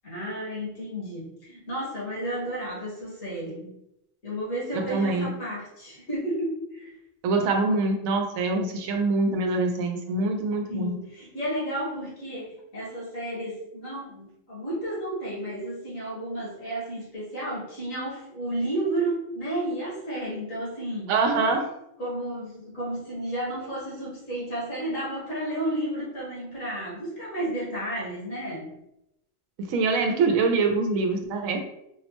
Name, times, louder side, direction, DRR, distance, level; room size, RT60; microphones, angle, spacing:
voice 1, 0.0-3.8 4.2-6.9 10.7-21.1 22.0-28.7, right 1 dB, 75° left, -6 dB, 1.8 m, -32 dB
voice 2, 4.7-5.3 7.2-11.0 21.1-21.7 29.6-31.6, right 3 dB, 85° right, 4 dB, 1.0 m, -24 dB
4.2 x 2.0 x 2.9 m, 0.83 s
omnidirectional pair, 1.4 m